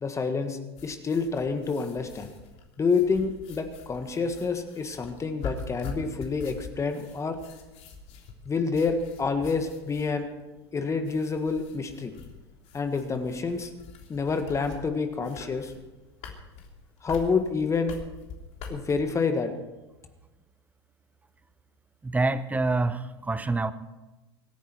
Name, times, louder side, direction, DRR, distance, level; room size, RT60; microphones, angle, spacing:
voice 1, 0.0-2.3 2.8-7.4 8.5-10.3 10.7-12.1 12.7-13.7 14.1-15.7 17.0-17.9 18.7-19.5, left 4 dB, 20° left, 7 dB, 1.7 m, -28 dB
sound 1, 0.8-19.0, left 5 dB, 50° left, 3.3 m, -44 dB
voice 2, 22.0-23.7, right 3 dB, 10° right, 13 dB, 1.0 m, -26 dB
25.5 x 10.0 x 4.6 m, 1.1 s
hypercardioid pair, 90°, 14 cm